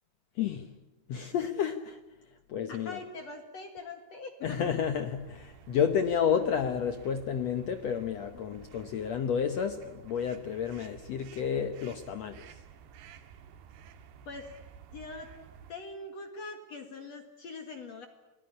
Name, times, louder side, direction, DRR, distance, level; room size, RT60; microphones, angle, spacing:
voice 1, 0.4-0.7 1.1-2.0 2.5-3.0 4.4-12.6, left 7 dB, 85° left, 8 dB, 1.5 m, -31 dB
voice 2, 2.7-4.6 14.3-14.5 14.9-15.3 15.7-18.1, left 3 dB, 50° left, 5 dB, 2.6 m, -42 dB
sound 1, 4.4-15.7, right 7 dB, 90° right, 3.6 m, -53 dB
28.0 x 20.0 x 9.9 m, 1.1 s
omnidirectional pair, 4.6 m